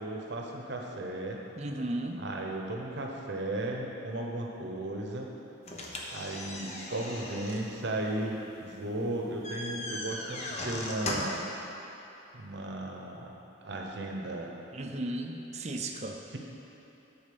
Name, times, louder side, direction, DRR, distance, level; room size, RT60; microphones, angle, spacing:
voice 1, 0.0-1.4 2.2-5.3 6.1-11.4 12.3-13.3 13.6-14.5 16.3-16.4, right 1 dB, 55° right, 0 dB, 0.9 m, -35 dB
voice 2, 1.6-2.2 14.7-16.2, right 1 dB, 35° right, 3 dB, 0.5 m, -35 dB
sound 1, 5.6-11.5, left 1 dB, 35° left, 0.8 m, -38 dB
8.5 x 4.2 x 6.9 m, 3.0 s
head